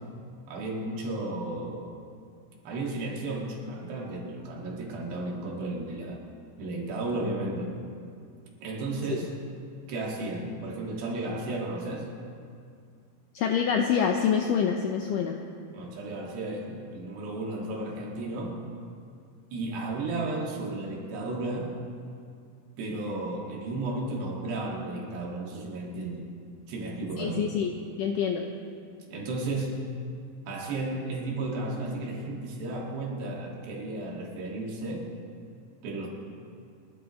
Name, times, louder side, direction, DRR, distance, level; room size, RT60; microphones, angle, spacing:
voice 1, 0.5-1.9 2.6-6.2 6.6-7.8 8.6-9.3 9.9-12.1 15.7-18.6 19.5-21.8 22.8-26.3 26.7-27.5 29.1-29.8 30.5-35.1 35.8-36.1, right 2 dB, 85° right, -1 dB, 4.2 m, -33 dB
voice 2, 13.3-15.4 27.2-27.7 28.0-28.4, left 7 dB, 80° left, 3 dB, 1.9 m, -26 dB
29.0 x 12.5 x 3.1 m, 2.3 s
omnidirectional pair, 4.7 m